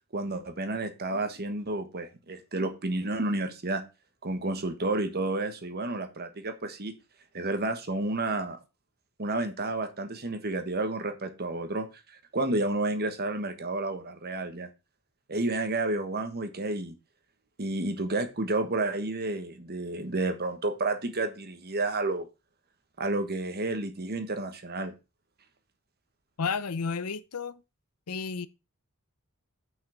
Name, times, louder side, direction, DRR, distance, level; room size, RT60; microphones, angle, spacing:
voice 1, 0.1-3.8 4.2-6.9 7.3-8.6 9.2-11.9 12.3-14.7 15.3-16.9 17.6-22.3 23.0-24.9, right 2 dB, 45° right, 1.3 m, -30 dB
voice 2, 26.4-27.6 28.1-28.5, left 5 dB, 85° left, 0.7 m, -32 dB
6.3 x 5.6 x 7.2 m
head